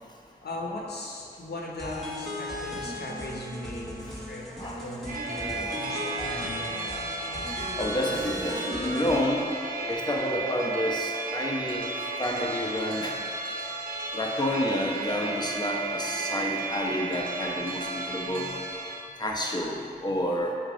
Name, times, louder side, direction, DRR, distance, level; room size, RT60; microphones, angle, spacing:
voice 1, 0.4-6.9, left 2 dB, 75° left, -2 dB, 1.2 m, -38 dB
sound 1, 1.8-9.2, left 1 dB, ahead, 1.2 m, -36 dB
sound 2, 5.1-19.0, right 3 dB, 55° right, 0.9 m, -33 dB
voice 2, 7.8-9.5 9.9-13.2 14.1-18.5 19.2-20.6, left 1 dB, 25° left, -1 dB, 1.0 m, -29 dB
7.2 x 4.4 x 5.1 m, 2.4 s
wide cardioid pair, 95°, 17 cm